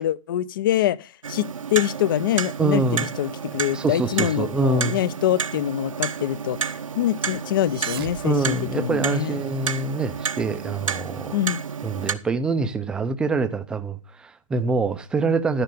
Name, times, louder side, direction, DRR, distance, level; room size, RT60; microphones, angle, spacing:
voice 1, 0.0-9.4 11.3-11.6, left 12 dB, 40° left, 0.5 m, -25 dB
Clock, 1.2-12.2, right 6 dB, 80° right, 1.1 m, -31 dB
voice 2, 2.6-3.1 3.7-5.0 8.2-11.4 11.8-15.6, right 3 dB, 5° right, 0.5 m, -25 dB
sound 1, 7.5-9.4, right 10 dB, 45° right, 1.0 m, -39 dB
13.0 x 5.7 x 6.9 m
hypercardioid pair, 145°, 17 cm